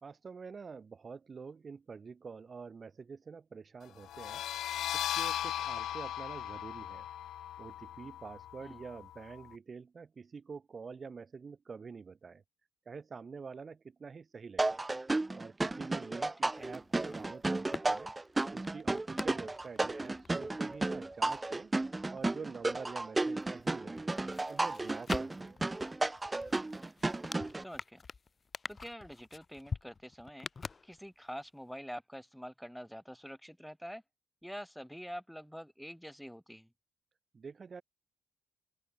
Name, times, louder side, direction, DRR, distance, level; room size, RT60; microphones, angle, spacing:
voice 1, 0.0-4.4 4.9-7.1 7.6-12.4 12.9-14.8 15.4-18.1 18.5-24.1 24.5-25.6 37.3-37.8, right 5 dB, 40° right, 1.2 m, -47 dB
sound 1, 4.0-9.5, left 11 dB, 75° left, 1.0 m, -38 dB
sound 2, 14.6-27.6, right 2 dB, 15° right, 0.4 m, -33 dB
voice 2, 16.4-16.7 27.6-28.0 28.7-30.5 30.8-34.0 34.4-36.7, equal, ahead, 5.3 m, -46 dB
sound 3, 16.6-23.1 23.4-31.4 31.7-31.8, left 4 dB, 35° left, 3.8 m, -47 dB
open air
cardioid pair, 90°, 0 cm